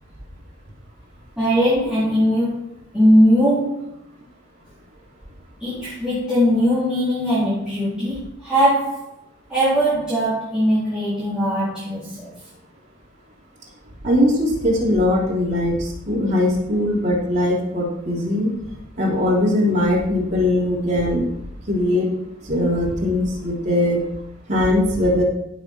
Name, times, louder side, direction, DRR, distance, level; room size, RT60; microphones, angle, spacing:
voice 1, 1.4-4.0 5.6-9.1 9.5-12.5, equal, 5° right, -11 dB, 4.4 m, -20 dB
voice 2, 14.0-18.5 19.0-21.3 21.7-22.1 22.4-24.0 24.5-25.2, left 1 dB, 35° right, -4 dB, 3.6 m, -20 dB
16.0 x 6.6 x 4.7 m, 0.79 s
head